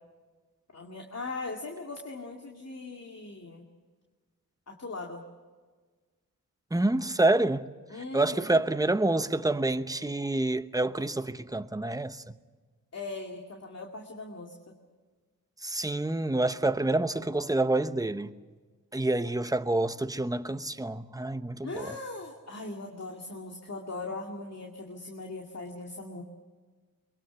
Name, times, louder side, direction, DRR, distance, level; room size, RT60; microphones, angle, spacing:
voice 1, 0.7-3.7 4.7-5.2 7.9-8.6 12.9-14.7 21.6-26.2, left 3 dB, 45° left, 2.4 m, -39 dB
voice 2, 6.7-7.7 8.1-12.3 15.6-18.3 18.9-22.0, right 2 dB, 10° right, 0.9 m, -27 dB
23.0 x 22.0 x 7.1 m
cardioid pair, 70°, 35 cm